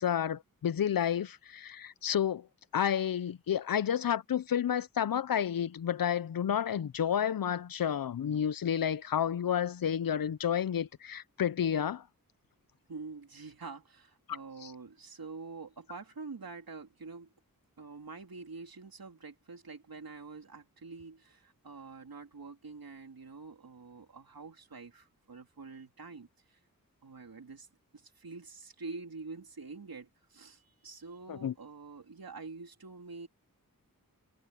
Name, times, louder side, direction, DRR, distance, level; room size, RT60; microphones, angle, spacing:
voice 1, 0.0-2.5 2.7-12.0 14.3-14.7 31.3-31.5, left 9 dB, 75° left, 0.6 m, -31 dB
voice 2, 12.9-17.3 17.8-26.6 27.0-27.7 27.9-33.3, right 4 dB, 80° right, 3.4 m, -46 dB
wide cardioid pair, 90°, 35 cm